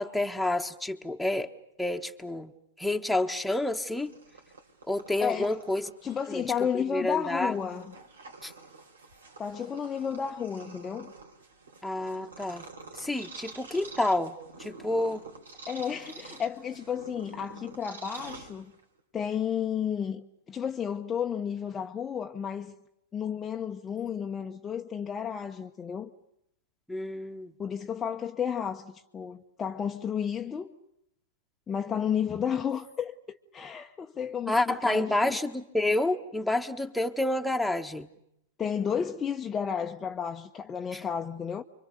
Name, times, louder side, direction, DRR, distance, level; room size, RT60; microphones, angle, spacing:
voice 1, 0.0-1.5 1.8-2.5 2.8-4.1 4.9-5.9 6.3-6.4 6.7-7.5 8.4-8.5 11.8-12.7 12.9-15.2 26.9-27.5 34.5-38.1 40.9-41.0, left 2 dB, ahead, 1.6 m, -29 dB
Purr, 3.8-19.0, right 4 dB, 90° right, 4.6 m, -48 dB
voice 2, 5.2-5.5 6.0-7.9 9.4-11.1 15.7-18.7 19.1-22.7 23.1-26.1 27.6-30.8 31.7-35.4 38.6-41.6, left 8 dB, 20° left, 1.0 m, -32 dB
29.5 x 25.0 x 6.8 m
hypercardioid pair, 120°, 0 cm